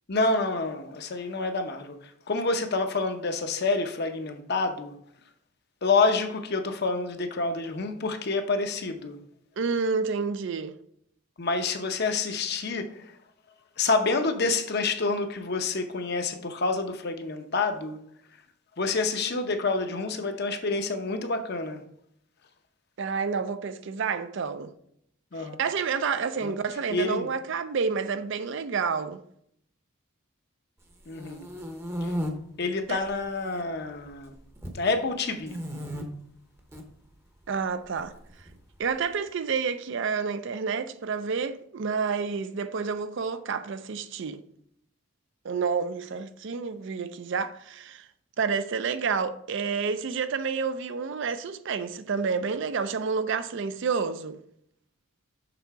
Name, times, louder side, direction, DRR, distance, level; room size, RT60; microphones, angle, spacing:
voice 1, 0.1-4.9 5.8-9.2 11.4-13.1 13.8-18.0 18.8-21.8 25.3-25.6 26.4-26.5 26.9-27.3 31.1-31.5 32.0-32.1 32.6-34.3 34.7-35.6, left 3 dB, 50° left, 0.7 m, -28 dB
voice 2, 9.6-10.7 23.0-24.7 25.4-29.2 32.9-33.0 37.5-38.1 38.8-44.4 45.4-48.1 48.4-54.4, right 5 dB, 60° right, 0.4 m, -29 dB
sound 1, 30.9-32.3 33.0-33.6 33.9-34.8 35.4-36.0 36.6-36.8 38.0-38.9, equal, 10° right, 0.7 m, -35 dB
6.9 x 3.9 x 4.6 m
head